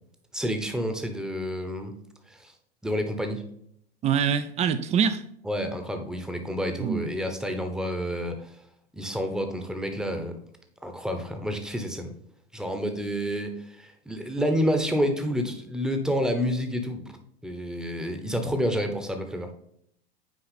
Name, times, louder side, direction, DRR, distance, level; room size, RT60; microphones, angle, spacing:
voice 1, 0.3-1.9 2.3-2.5 2.8-3.4 5.4-8.6 8.9-10.4 10.8-12.2 12.5-17.0 17.4-19.5, equal, ahead, 6 dB, 0.9 m, -29 dB
voice 2, 4.0-5.2 6.8-7.0, right 7 dB, 20° right, 11 dB, 0.4 m, -24 dB
6.2 x 4.6 x 4.1 m, 0.70 s
figure-of-eight pair, 90°, 32 cm